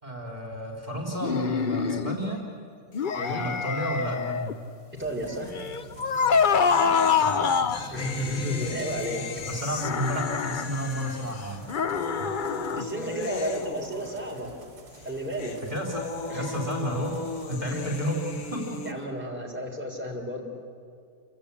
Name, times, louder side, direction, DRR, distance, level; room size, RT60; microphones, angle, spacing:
voice 1, 0.0-2.4 3.3-4.5 7.2-7.9 9.4-11.6 12.2-12.3 15.7-16.0 16.3-18.9, equal, 30° right, -1 dB, 3.7 m, -32 dB
sound 1, 1.2-2.2 2.9-4.5 5.5-7.9 9.8-10.7 11.7-12.8, left 6 dB, 45° left, 0.8 m, -25 dB
sound 2, 2.9-3.3 3.5-3.6 6.3-14.6 14.9-18.9, left 4 dB, 80° left, 1.8 m, -38 dB
voice 2, 3.2-3.5 4.9-5.5 7.9-9.2 12.7-14.5 15.0-15.6 16.3-16.6 17.6-17.8 18.9-20.4, equal, 10° right, -1 dB, 4.0 m, -32 dB
sound 3, 5.0-19.1, equal, 50° right, 2.1 m, -47 dB
29.0 x 24.0 x 8.5 m, 2.4 s
omnidirectional pair, 1.4 m